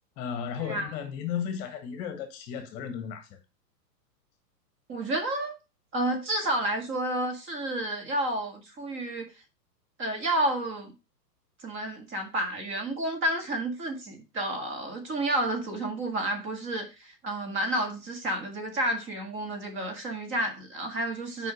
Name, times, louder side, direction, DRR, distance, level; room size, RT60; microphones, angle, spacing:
voice 1, 0.2-3.4, left 8 dB, 35° left, 1.4 m, -34 dB
voice 2, 4.9-5.6 5.9-9.3 10.0-10.9 11.6-21.5, right 1 dB, 25° right, 1.8 m, -30 dB
6.2 x 5.1 x 4.9 m
hypercardioid pair, 125°, 50 cm